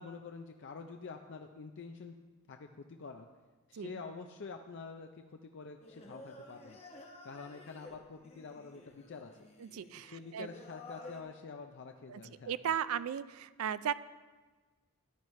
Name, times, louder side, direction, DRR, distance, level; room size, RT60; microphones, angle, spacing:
voice 1, 0.0-2.1 2.5-3.3 3.7-6.8 7.2-9.5 9.9-12.7, left 4 dB, 55° left, 5 dB, 0.5 m, -47 dB
Singing, 5.8-11.2, left 1 dB, 30° left, 1.0 m, -52 dB
voice 2, 9.6-10.5 12.1-12.2 12.5-13.9, right 8 dB, 75° right, 15 dB, 0.4 m, -36 dB
13.5 x 9.8 x 3.1 m, 1.3 s
head